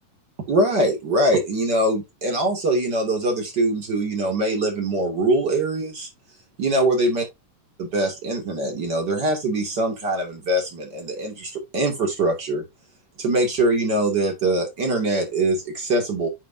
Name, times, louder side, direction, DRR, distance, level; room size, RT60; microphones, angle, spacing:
voice 1, 0.5-6.1 6.6-7.2 7.8-12.6 13.2-16.3, right 1 dB, 35° right, 2.8 m, -23 dB
8.1 x 6.2 x 2.7 m
omnidirectional pair, 3.6 m